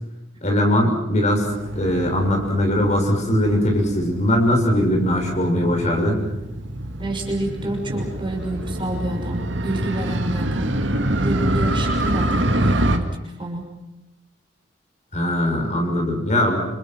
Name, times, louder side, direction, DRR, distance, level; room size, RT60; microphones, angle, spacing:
voice 1, 0.4-1.5 1.7-6.2 15.1-16.6, left 1 dB, 40° left, 2 dB, 6.7 m, -20 dB
Motorcycle, 1.4-13.0, right 1 dB, 80° right, 2.4 m, -26 dB
voice 2, 7.0-10.7 11.2-13.7, right 1 dB, 25° right, 1 dB, 6.1 m, -28 dB
29.5 x 27.5 x 6.2 m, 0.95 s
head